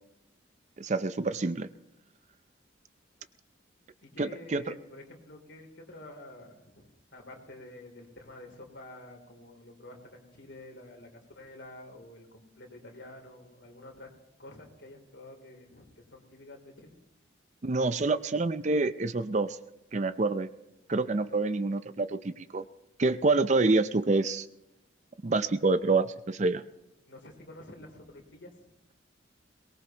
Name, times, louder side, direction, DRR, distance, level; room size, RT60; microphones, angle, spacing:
voice 1, 0.8-1.7 4.2-4.6 17.6-19.6 19.9-20.5 20.9-22.6 23.0-24.5 25.2-26.6, right 3 dB, 35° right, 13 dB, 0.5 m, -27 dB
voice 2, 4.0-14.1 14.4-17.0 27.1-28.6, left 1 dB, 65° left, 2 dB, 3.2 m, -49 dB
22.5 x 19.0 x 3.0 m, 0.91 s
head